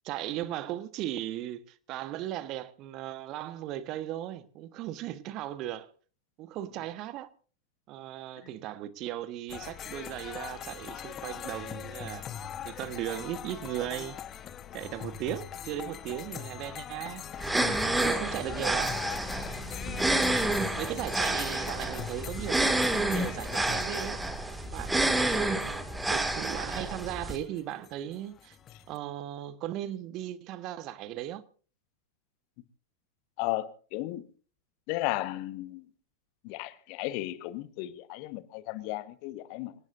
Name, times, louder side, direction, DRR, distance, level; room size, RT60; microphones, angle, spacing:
voice 1, 0.0-5.9 6.4-7.3 7.9-12.3 12.6-14.2 14.7-17.2 17.5-18.9 20.8-24.2 24.7-28.6 28.9-31.4, right 13 dB, 40° right, 1.3 m, -37 dB
sound 1, 9.5-29.0, left 9 dB, 30° left, 1.2 m, -42 dB
sound 2, 17.4-27.4, right 2 dB, 5° right, 2.2 m, -29 dB
voice 2, 33.4-34.2 34.9-35.8 36.4-39.7, left 17 dB, 45° left, 1.3 m, -34 dB
26.0 x 18.5 x 2.6 m
figure-of-eight pair, 90°, 0 cm